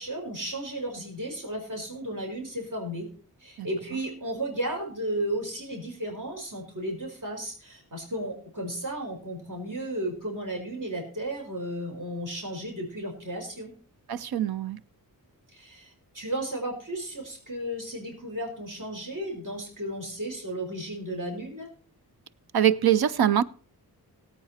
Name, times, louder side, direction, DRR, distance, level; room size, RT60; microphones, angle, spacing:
voice 1, 0.0-3.1 3.4-13.7 15.5-21.7, right 1 dB, 55° right, 4.8 m, -34 dB
voice 2, 14.1-14.8 22.5-23.4, right 10 dB, 75° right, 0.7 m, -23 dB
17.5 x 8.5 x 4.3 m
wide cardioid pair, 95°, 37 cm